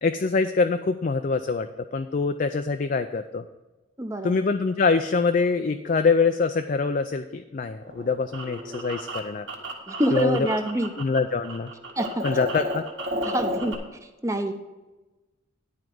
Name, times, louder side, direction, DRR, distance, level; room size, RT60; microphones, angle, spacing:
voice 1, 0.0-3.4 4.2-9.5 10.1-10.4 11.0-11.7 12.2-12.8, left 4 dB, 40° left, 8 dB, 0.4 m, -24 dB
voice 2, 4.0-4.4 9.9-10.9 12.0-12.2 13.2-13.7 14.2-14.5, equal, 15° right, 7 dB, 0.7 m, -26 dB
sound 1, 7.8-11.2 11.4-13.7, equal, 60° right, 1.6 m, -32 dB
11.0 x 4.7 x 7.7 m, 1.1 s
head